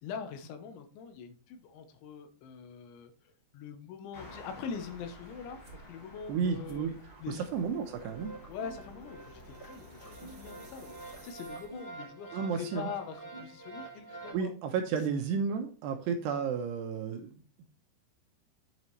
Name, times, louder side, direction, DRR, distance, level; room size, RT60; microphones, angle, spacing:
voice 1, 0.0-6.9 7.2-7.5 8.5-14.5, left 6 dB, 75° left, 7 dB, 3.3 m, -43 dB
sound 1, 4.1-11.3, left 1 dB, 55° left, 1.2 m, -52 dB
sound 2, 5.6-5.9 6.6-12.1, right 3 dB, 40° right, 3.0 m, -56 dB
voice 2, 6.3-7.0 7.3-8.3 12.3-12.9 14.3-17.4, right 6 dB, 75° right, 5 dB, 2.6 m, -32 dB
sound 3, 7.9-14.3, right 3 dB, 25° left, 2.4 m, -47 dB
8.5 x 8.0 x 3.2 m, 0.36 s
omnidirectional pair, 5.5 m